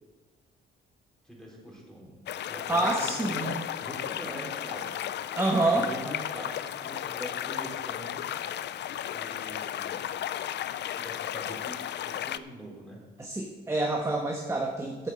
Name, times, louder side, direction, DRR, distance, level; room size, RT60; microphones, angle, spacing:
voice 1, 1.2-2.2 2.5-5.1 5.6-8.3 9.1-10.3 10.9-13.1, right 1 dB, 5° left, -3 dB, 4.1 m, -43 dB
sound 1, 2.3-12.4, left 11 dB, 60° left, 0.5 m, -34 dB
voice 2, 2.7-3.6 5.4-5.9 13.2-15.1, right 2 dB, 15° right, 1 dB, 1.2 m, -27 dB
8.2 x 7.5 x 7.9 m, 1.3 s
cardioid pair, 90°, 20 cm